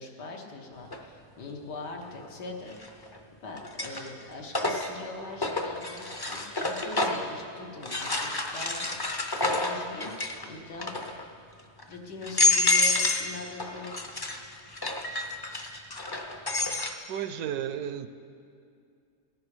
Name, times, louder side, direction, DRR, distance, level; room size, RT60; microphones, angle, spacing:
voice 1, 0.0-3.0 3.4-11.2 11.9-14.2, left 3 dB, 90° left, 1 dB, 2.0 m, -42 dB
sound 1, 0.9-1.0 2.7-3.2 3.6-7.3 7.8-10.4 10.7-11.2 11.8-11.9 12.2-13.3 13.6-16.9, left 3 dB, 35° left, 0.4 m, -28 dB
voice 2, 17.1-18.1, right 9 dB, 75° right, 11 dB, 1.1 m, -33 dB
17.0 x 10.5 x 4.9 m, 2.4 s
omnidirectional pair, 1.8 m